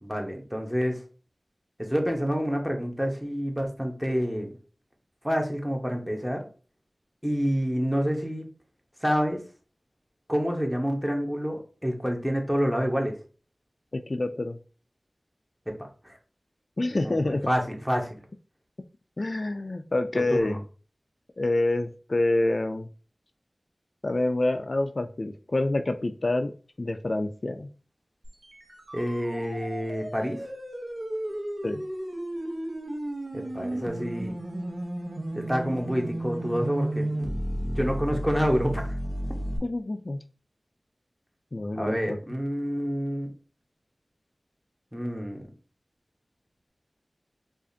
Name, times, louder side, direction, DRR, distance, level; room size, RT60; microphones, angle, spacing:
voice 1, 0.0-1.0 1.8-4.5 5.2-6.5 7.2-8.5 9.0-9.4 10.3-13.1 16.0-16.2 17.0-18.1 20.1-20.6 28.9-30.5 33.3-34.3 35.3-37.3 37.7-39.0 41.7-43.3 44.9-45.4, equal, 5° right, 2 dB, 1.0 m, -28 dB
voice 2, 13.9-14.6 16.8-17.5 19.2-20.6 21.4-22.9 24.0-26.5 26.8-27.7 31.6-31.8 39.6-40.2 41.5-42.2, left 2 dB, 55° left, 8 dB, 0.3 m, -27 dB
sound 1, 28.2-39.6, right 1 dB, 65° right, 0.9 m, -33 dB
4.8 x 2.5 x 2.7 m, 0.38 s
wide cardioid pair, 45°, 0 cm